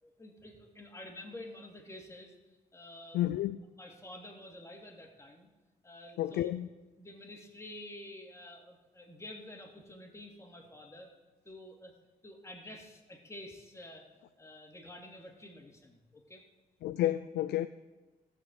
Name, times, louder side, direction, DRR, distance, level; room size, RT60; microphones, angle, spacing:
voice 1, 0.0-2.3 2.7-3.3 3.8-5.5 5.8-6.6 7.0-11.1 11.4-11.9 12.2-14.1 14.4-16.5, left 1 dB, 15° left, 1 dB, 2.7 m, -49 dB
voice 2, 3.1-3.6 6.2-6.7 16.8-17.7, left 13 dB, 85° left, 13 dB, 0.4 m, -30 dB
14.5 x 6.1 x 7.9 m, 1.2 s
cardioid pair, 75°, 17 cm